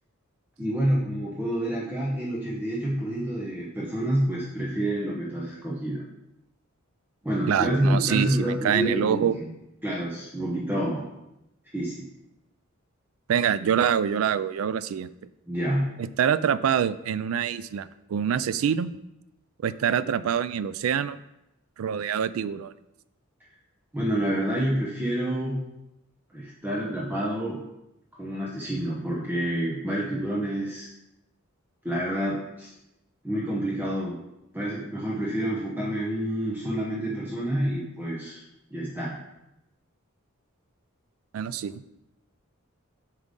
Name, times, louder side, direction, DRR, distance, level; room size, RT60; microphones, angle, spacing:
voice 1, 0.6-6.0 7.2-9.5 9.8-11.1 11.7-12.1 15.5-16.0 23.9-25.7 26.3-27.6 28.2-30.9 31.8-32.7 33.2-34.2 34.5-38.4 38.7-39.2, right 1 dB, 10° right, -5 dB, 0.9 m, -28 dB
voice 2, 7.5-9.3 13.3-15.1 16.0-18.9 19.6-21.2 21.8-22.7 41.3-42.0, right 8 dB, 75° right, 16 dB, 0.3 m, -25 dB
7.6 x 5.0 x 3.7 m, 0.89 s
head